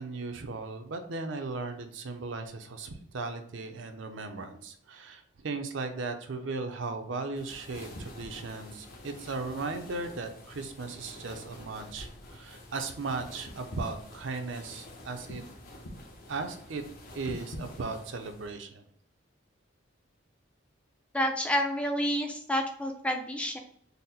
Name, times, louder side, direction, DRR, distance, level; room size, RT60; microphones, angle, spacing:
voice 1, 0.0-15.4 16.3-16.8 17.1-18.8, right 3 dB, 70° right, 7 dB, 0.5 m, -37 dB
sound 1, 7.4-18.5, left 1 dB, 45° left, 0.7 m, -46 dB
voice 2, 21.1-23.6, equal, 5° left, 4 dB, 0.4 m, -29 dB
3.9 x 2.1 x 4.1 m, 0.63 s
head